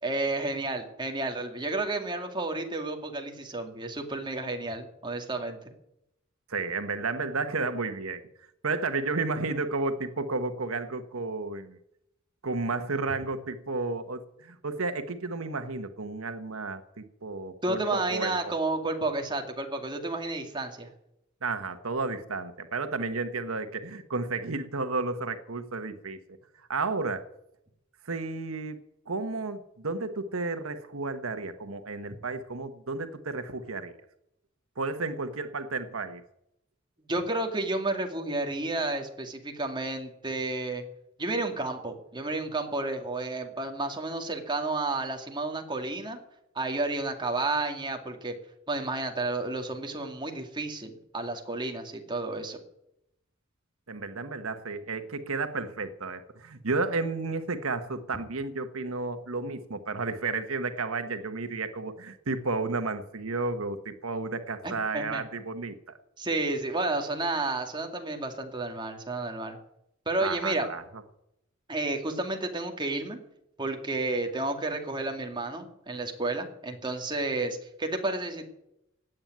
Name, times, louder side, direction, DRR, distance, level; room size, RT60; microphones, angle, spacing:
voice 1, 0.0-5.6 17.6-20.9 37.1-40.8 41.2-46.2 46.6-48.4 48.7-52.6 64.6-65.2 66.2-69.6 70.1-70.7 71.7-73.2 73.6-78.5, right 2 dB, 20° right, 3 dB, 2.3 m, -31 dB
voice 2, 6.5-8.2 8.6-11.8 12.4-18.5 21.4-27.3 28.0-28.8 29.1-34.0 34.8-36.2 53.9-66.0 70.2-70.8, right 3 dB, 85° right, 9 dB, 1.2 m, -32 dB
17.0 x 9.0 x 9.3 m, 0.81 s
head